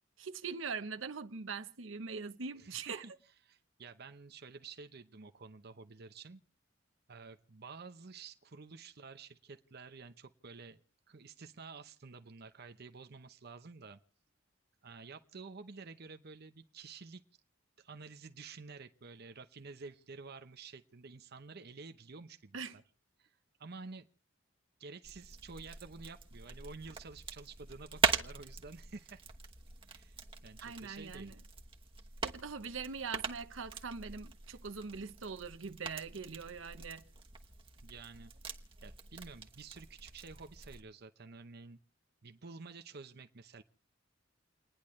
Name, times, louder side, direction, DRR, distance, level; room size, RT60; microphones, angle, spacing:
voice 1, 0.2-3.0 22.5-22.8 30.6-31.3 32.2-37.0, right 5 dB, 80° right, 0.9 m, -42 dB
voice 2, 2.6-3.1 3.4-6.4 7.1-10.8 11.1-14.0 14.8-17.2 17.8-22.8 23.2-24.1 24.8-29.2 29.9-31.3 37.8-38.3 38.8-41.8 42.2-43.6, right 4 dB, 55° right, 0.8 m, -50 dB
sound 1, 25.0-40.8, right 5 dB, 25° right, 1.1 m, -41 dB
30.0 x 10.0 x 3.2 m
head